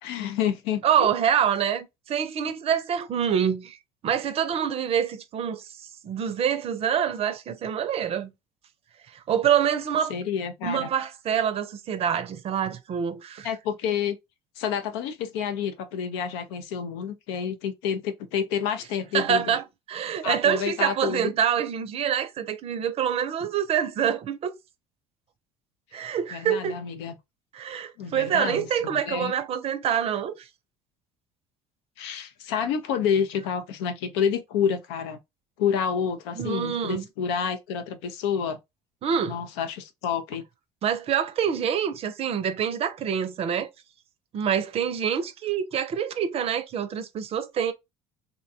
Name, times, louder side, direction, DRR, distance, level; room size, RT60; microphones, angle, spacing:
voice 1, 0.0-1.1 10.1-10.9 13.4-14.2 14.6-19.6 20.2-21.3 26.3-27.1 28.0-29.3 32.0-35.2 35.6-38.6 39.3-40.4, left 7 dB, 80° left, 0.5 m, -29 dB
voice 2, 0.8-3.8 4.0-8.3 9.1-10.1 10.6-13.5 19.1-24.5 25.9-26.8 27.5-30.5 36.4-37.0 39.0-39.4 40.8-43.7 44.3-47.7, right 8 dB, 45° right, 0.5 m, -26 dB
2.7 x 2.2 x 2.6 m
hypercardioid pair, 70°, 14 cm